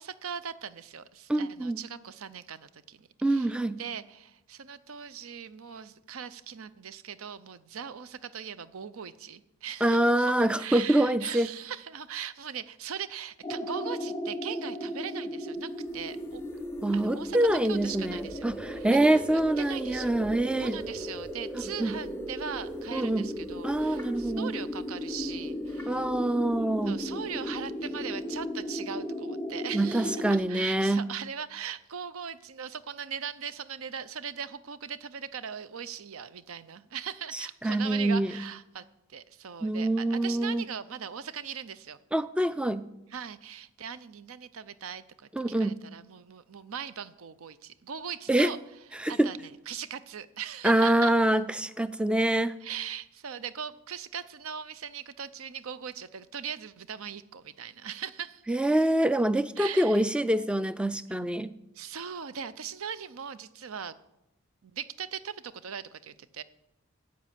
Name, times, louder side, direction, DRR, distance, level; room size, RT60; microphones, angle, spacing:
voice 1, 0.0-3.5 3.8-16.4 16.9-18.5 18.7-19.2 19.6-20.1 20.6-26.1 26.9-42.0 43.1-45.3 45.6-48.6 49.1-51.1 52.6-58.4 59.6-60.0 61.7-64.0 64.6-66.4, right 7 dB, 75° right, 15 dB, 0.6 m, -40 dB
voice 2, 1.3-1.8 3.2-3.8 9.8-11.5 16.8-20.8 21.8-21.9 22.9-23.3 23.6-24.5 25.9-27.0 29.7-31.1 37.3-38.4 39.6-40.6 42.1-42.9 45.3-45.8 48.3-48.5 48.9-49.3 50.6-52.5 58.5-61.5, right 1 dB, 5° right, 14 dB, 0.3 m, -25 dB
sound 1, 13.4-30.4, equal, 10° left, 0.9 m, -36 dB
9.3 x 8.6 x 7.4 m, 0.91 s
head